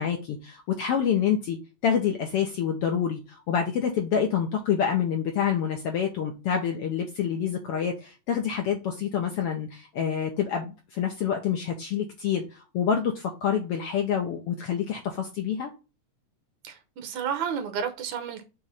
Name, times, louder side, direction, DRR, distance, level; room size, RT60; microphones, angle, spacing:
voice 1, 0.0-1.6 1.8-15.7, left 8 dB, 70° left, 1.5 m, -27 dB
voice 2, 16.6-18.5, right 7 dB, 70° right, 2.2 m, -31 dB
6.9 x 3.2 x 5.4 m
omnidirectional pair, 3.6 m